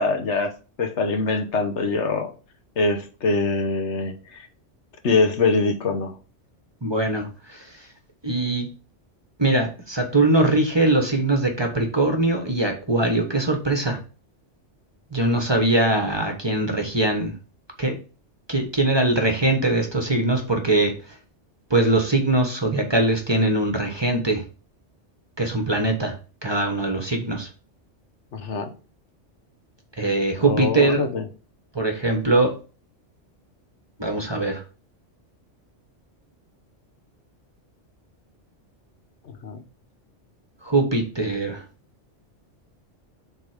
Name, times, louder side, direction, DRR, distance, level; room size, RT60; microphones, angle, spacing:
voice 1, 0.0-2.3 2.8-4.5 5.0-6.1 28.3-28.7 30.4-31.2 39.2-39.6, left 3 dB, 70° left, 1.3 m, -24 dB
voice 2, 6.8-7.7 8.2-8.7 9.4-14.0 15.1-17.3 17.8-18.0 18.5-20.9 21.7-24.4 25.4-26.1 26.4-27.5 30.0-31.1 31.7-32.5 34.0-34.6 40.6-41.6, right 2 dB, 25° right, 1.2 m, -22 dB
7.5 x 3.7 x 5.0 m
omnidirectional pair, 1.2 m